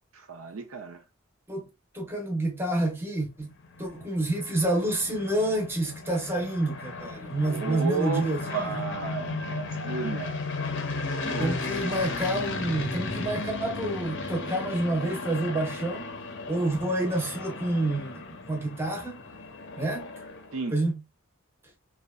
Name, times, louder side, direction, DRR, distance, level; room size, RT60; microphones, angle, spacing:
voice 1, 0.2-1.0 7.4-10.4 11.1-11.6 20.5-20.7, right 4 dB, 70° right, 0.5 m, -33 dB
voice 2, 1.9-3.5 3.8-8.8 11.4-16.2 16.5-18.2 18.5-19.2 19.8-20.1 20.7-21.0, right 1 dB, 10° right, 0.7 m, -28 dB
sound 1, 3.5-20.7, left 3 dB, 60° left, 0.5 m, -35 dB
2.7 x 2.2 x 2.3 m
head